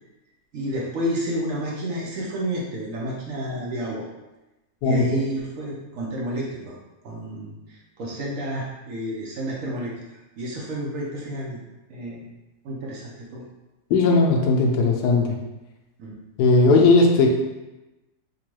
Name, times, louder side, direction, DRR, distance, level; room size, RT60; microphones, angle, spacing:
voice 1, 0.5-4.0 4.8-6.7 7.0-9.9 10.4-11.6 11.9-12.3 12.6-13.4 16.0-16.2 16.6-16.8, right 1 dB, 60° right, -4 dB, 1.0 m, -30 dB
voice 2, 13.9-15.4 16.4-17.3, left 3 dB, 90° left, 1 dB, 1.2 m, -17 dB
3.6 x 2.3 x 3.0 m, 1.0 s
omnidirectional pair, 1.7 m